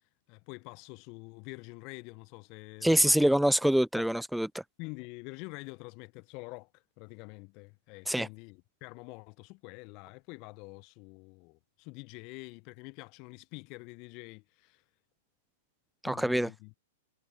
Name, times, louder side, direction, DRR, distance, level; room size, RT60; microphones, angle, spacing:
voice 1, 0.3-3.3 4.0-4.1 4.8-14.8 16.0-16.7, left 29 dB, 40° left, 0.8 m, -46 dB
voice 2, 2.8-4.6 8.1-8.3 16.0-16.5, right 1 dB, ahead, 0.3 m, -25 dB
figure-of-eight pair, 100°, 0 cm